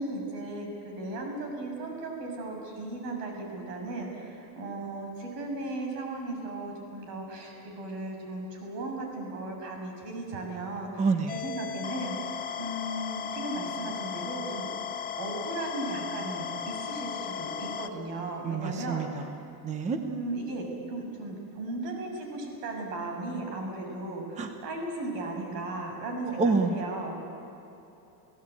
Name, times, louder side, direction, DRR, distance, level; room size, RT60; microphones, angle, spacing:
voice 1, 0.0-14.7 15.2-19.3 20.0-27.2, right 2 dB, 90° right, 2 dB, 7.1 m, -36 dB
voice 2, 11.0-11.4 18.4-19.2 19.6-20.0 24.4-24.5 26.4-26.8, right 4 dB, 15° right, 7 dB, 0.9 m, -27 dB
sound 1, 11.3-17.9, left 8 dB, 20° left, 0.6 m, -36 dB
30.0 x 16.5 x 8.4 m, 3.0 s
cardioid pair, 170°, 47 cm